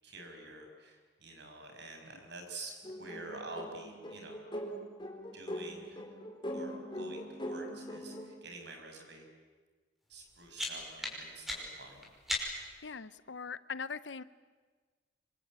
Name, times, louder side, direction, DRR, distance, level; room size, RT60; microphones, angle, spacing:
voice 1, 0.0-4.4 5.3-6.0 6.5-9.3 10.1-12.1, right 2 dB, 65° right, 4 dB, 6.3 m, -48 dB
sound 1, 2.8-8.3, equal, 25° left, 4.2 m, -42 dB
sound 2, 10.1-12.8, left 1 dB, ahead, 5.7 m, -39 dB
voice 2, 12.8-14.2, left 5 dB, 75° left, 15 dB, 0.8 m, -41 dB
27.0 x 25.0 x 8.8 m, 1.4 s
head